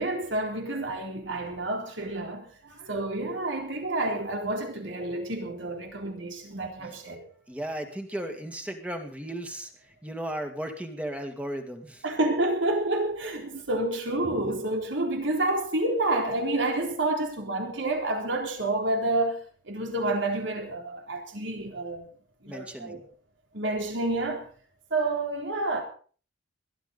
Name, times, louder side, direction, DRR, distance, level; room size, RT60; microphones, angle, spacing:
voice 1, 0.0-7.3 12.0-22.1 22.4-23.0 23.5-24.5 24.9-25.8, right 2 dB, 70° right, 3.8 m, -29 dB
voice 2, 7.5-9.7 10.0-12.0 22.5-23.0, right 1 dB, 5° right, 2.1 m, -35 dB
21.5 x 12.5 x 4.1 m
head